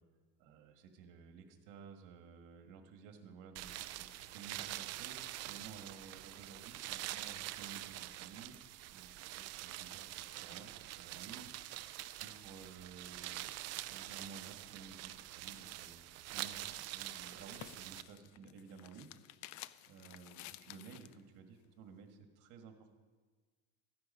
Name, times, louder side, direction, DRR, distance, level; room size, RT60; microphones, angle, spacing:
voice 1, 0.4-8.5 8.9-11.5 12.2-13.5 13.9-16.1 16.3-19.1 19.9-22.9, right 5 dB, 70° right, 5 dB, 1.7 m, -54 dB
sound 1, 3.6-18.0, right 15 dB, 50° right, 0.5 m, -45 dB
sound 2, 16.8-21.2, left 15 dB, 60° left, 0.5 m, -54 dB
14.0 x 9.6 x 5.5 m, 1.4 s
cardioid pair, 140°, 33 cm